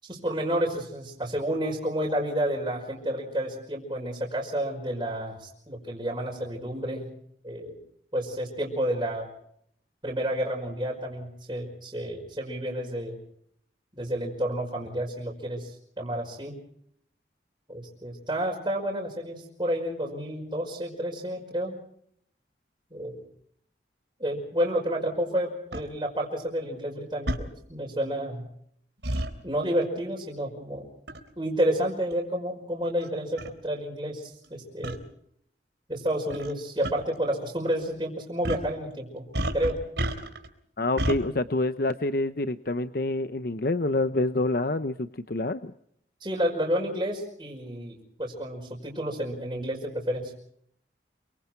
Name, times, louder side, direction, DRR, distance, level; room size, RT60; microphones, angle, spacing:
voice 1, 0.0-7.1 7.4-7.8 8.1-9.3 10.0-13.2 14.0-16.6 17.7-21.8 22.9-23.2 24.2-28.4 29.4-30.9 31.4-35.0 35.9-39.3 39.5-39.8 46.2-50.3, equal, 25° right, -3 dB, 5.5 m, -30 dB
sound 1, 25.7-25.8 27.3-27.4 29.0-29.3 31.1-31.3 32.1-32.2 33.0-33.1 33.4-33.5 34.8-35.0 36.3-36.5 36.8-36.9 38.4-38.7 39.3-40.5 41.0-41.2, right 1 dB, 80° right, 3.5 m, -30 dB
voice 2, 40.8-45.7, left 2 dB, 55° left, 11 dB, 0.8 m, -27 dB
28.5 x 24.5 x 4.5 m, 0.69 s
head